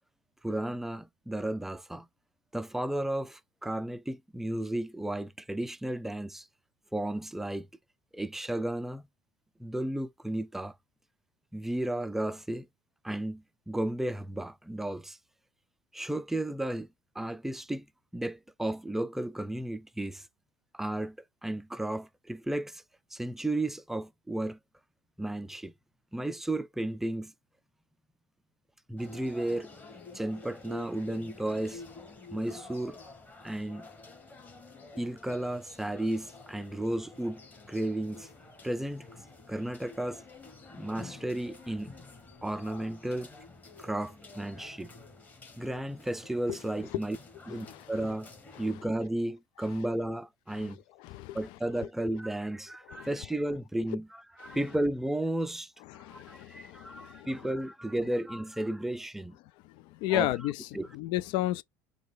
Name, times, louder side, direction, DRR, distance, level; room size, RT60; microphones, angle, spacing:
voice 1, 0.4-2.1 2.5-6.5 6.9-7.7 8.1-9.1 9.6-10.7 11.5-12.7 13.0-15.2 15.9-16.9 17.2-17.9 18.1-20.3 20.7-21.2 21.4-22.8 23.1-24.6 25.2-25.7 26.1-27.3 28.9-29.7 30.1-31.8 32.3-33.0 33.4-33.9 35.0-37.4 37.7-38.3 38.6-39.1 39.5-40.2 40.7-41.9 42.4-43.3 43.8-44.9 45.6-47.2 47.5-48.3 48.6-50.8 51.3-55.7 56.0-59.4 60.1-60.3 60.7-60.9, right 1 dB, 5° right, 0.4 m, -33 dB
sound 1, 29.0-48.7, left 3 dB, 20° left, 1.6 m, -50 dB
voice 2, 47.5-47.8 48.5-48.6 50.6-50.7 51.0-51.4 52.9-53.1 54.4-54.6 55.9-57.3 60.0-61.6, left 16 dB, 65° left, 0.4 m, -33 dB
4.8 x 2.3 x 3.9 m
supercardioid pair, 120°, 9 cm